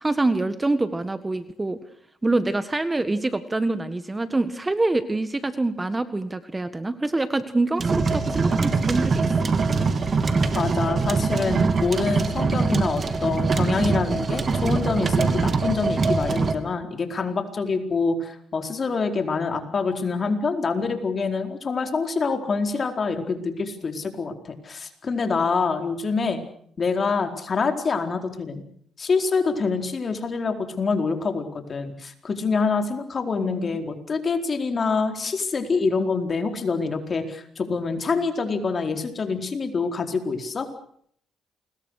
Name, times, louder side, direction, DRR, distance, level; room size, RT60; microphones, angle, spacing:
voice 1, 0.0-1.8 2.2-9.5 33.4-33.8, right 2 dB, 20° right, 12 dB, 1.6 m, -25 dB
sound 1, 7.8-16.5, right 4 dB, 40° right, 3.0 m, -23 dB
voice 2, 10.5-26.4 26.8-28.6 29.0-40.7, left 4 dB, 40° left, 6 dB, 4.4 m, -26 dB
28.5 x 21.5 x 6.6 m, 0.64 s
cardioid pair, 90°, 0 cm